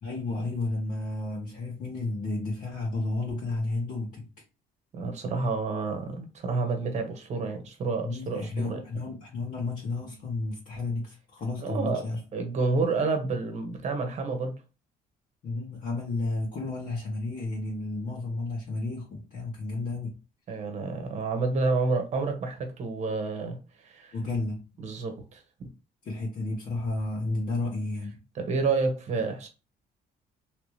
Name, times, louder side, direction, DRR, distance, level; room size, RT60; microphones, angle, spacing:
voice 1, 0.0-4.3 8.0-12.2 15.4-20.2 24.1-24.6 26.0-28.2, left 2 dB, 55° left, 1.5 m, -32 dB
voice 2, 4.9-8.8 11.6-12.0 12.3-14.6 20.5-24.1 24.8-25.7 28.3-29.5, right 3 dB, 45° right, 1.1 m, -29 dB
3.2 x 2.9 x 3.1 m
cardioid pair, 145°, 16 cm